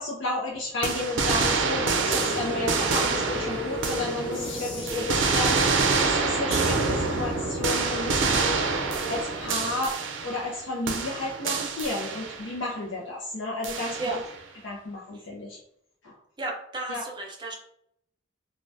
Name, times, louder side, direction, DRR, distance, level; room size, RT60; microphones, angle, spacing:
voice 1, 0.0-10.0 10.2-14.0 14.6-15.6 16.0-16.2 16.9-17.0, left 2 dB, 80° left, -4 dB, 0.6 m, -32 dB
sound 1, 0.8-4.5 4.9-10.6 10.9-12.5 13.6-14.4, right 4 dB, 85° right, 0.5 m, -27 dB
sound 2, 2.0-9.8, equal, 25° left, 0.6 m, -35 dB
voice 2, 4.8-5.1 14.0-14.2 15.1-15.3 16.4-17.5, right 2 dB, 25° right, 0 dB, 0.6 m, -34 dB
3.3 x 2.2 x 2.6 m, 0.71 s
head